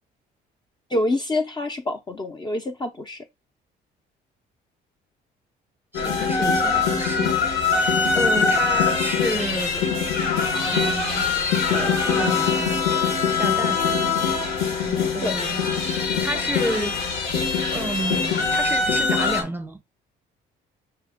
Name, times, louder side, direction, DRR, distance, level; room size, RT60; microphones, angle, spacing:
voice 1, 0.9-3.2 15.2-15.4, left 1 dB, 25° left, 0.6 m, -26 dB
sound 1, 5.9-19.4, left 5 dB, 85° left, 1.2 m, -22 dB
voice 2, 5.9-9.9 10.7-11.3 11.7-12.8 13.3-13.8 14.8-15.6 16.2-17.0 17.7-19.8, right 1 dB, 10° right, 0.8 m, -30 dB
5.7 x 2.2 x 3.5 m
cardioid pair, 85°, 19 cm